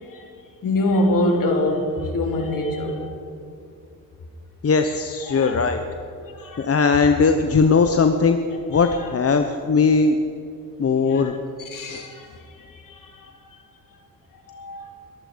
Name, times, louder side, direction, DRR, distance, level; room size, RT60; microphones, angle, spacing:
voice 1, 0.6-3.1 5.3-5.6 6.3-6.7 8.7-9.0 11.1-11.2 11.7-13.6 14.3-14.9, left 1 dB, 60° left, 2 dB, 3.1 m, -25 dB
voice 2, 4.6-5.8 6.6-8.4 8.7-10.2 10.8-11.3 11.8-12.1, left 4 dB, 40° left, 7 dB, 1.0 m, -19 dB
22.0 x 12.5 x 5.2 m, 2.5 s
cardioid pair, 70°, 36 cm